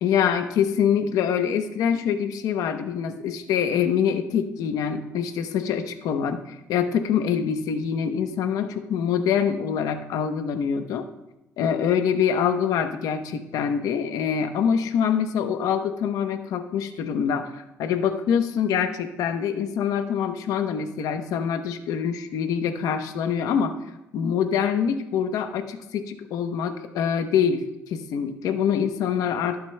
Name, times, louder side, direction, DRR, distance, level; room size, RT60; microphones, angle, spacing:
voice 1, 0.0-11.1 11.6-23.8 24.1-29.6, left 7 dB, 75° left, 8 dB, 0.8 m, -25 dB
19.5 x 8.1 x 2.2 m, 0.92 s
cardioid pair, 100°, 6 cm